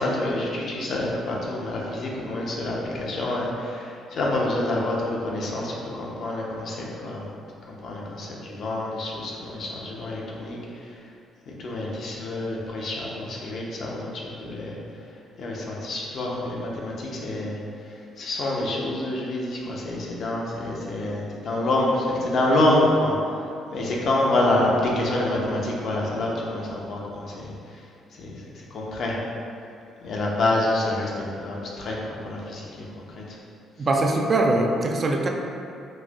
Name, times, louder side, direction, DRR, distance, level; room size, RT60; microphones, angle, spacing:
voice 1, 0.0-7.2 7.7-10.6 11.6-14.1 14.4-14.8 15.4-17.6 18.2-23.1 23.7-27.5 28.2-28.3 28.7-29.1 30.0-32.7 33.2-33.3, left 1 dB, 60° left, -3 dB, 0.6 m, -27 dB
voice 2, 33.8-35.3, right 2 dB, 40° right, 2 dB, 0.3 m, -22 dB
4.1 x 2.1 x 2.3 m, 2.6 s
supercardioid pair, 70°, 0 cm